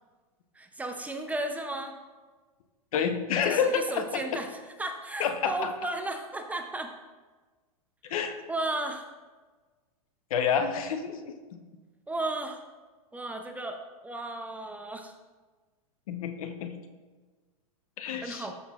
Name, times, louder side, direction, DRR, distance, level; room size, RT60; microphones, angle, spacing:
voice 1, 0.5-2.0 3.4-6.9 8.5-9.0 12.1-12.6 13.1-15.1 18.2-18.5, right 2 dB, 10° right, 4 dB, 0.6 m, -34 dB
voice 2, 2.9-4.4 5.2-5.5 8.0-8.4 10.3-11.3 16.1-16.7 18.0-18.5, left 7 dB, 70° left, 7 dB, 0.9 m, -28 dB
13.0 x 6.6 x 2.4 m, 1.3 s
hypercardioid pair, 125°, 19 cm